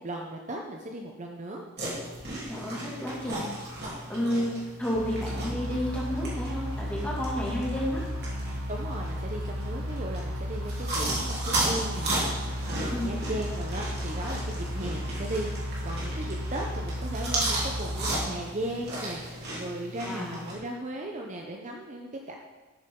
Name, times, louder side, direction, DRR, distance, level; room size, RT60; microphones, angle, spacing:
voice 1, 0.0-1.6 8.7-22.4, right 1 dB, 35° right, 1 dB, 0.8 m, -37 dB
sound 1, 1.8-20.5, right 1 dB, 50° right, 3.4 m, -35 dB
voice 2, 2.5-3.5 4.1-8.1 12.9-13.2 20.0-20.4, equal, 5° left, -5 dB, 2.4 m, -31 dB
sound 2, 5.0-18.3, equal, 75° right, 1.6 m, -34 dB
13.5 x 8.0 x 3.8 m, 1.3 s
head